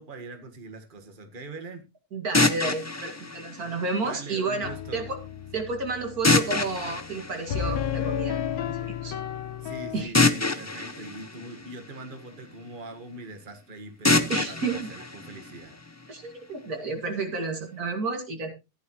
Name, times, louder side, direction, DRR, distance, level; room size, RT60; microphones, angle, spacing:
voice 1, 0.0-1.8 4.0-5.1 9.6-15.8, right 2 dB, 35° right, 6 dB, 1.7 m, -42 dB
voice 2, 2.1-5.2 5.5-8.4 8.7-9.1 9.9-10.1 14.3-14.9 16.1-18.5, right 3 dB, 80° right, 4 dB, 2.7 m, -31 dB
sound 1, 2.3-4.4 6.2-8.2 10.1-12.4 14.0-16.1, left 3 dB, 20° left, 0.4 m, -26 dB
sound 2, 4.6-10.1, left 8 dB, 75° left, 1.2 m, -33 dB
14.5 x 10.0 x 3.0 m, 0.26 s
omnidirectional pair, 1.6 m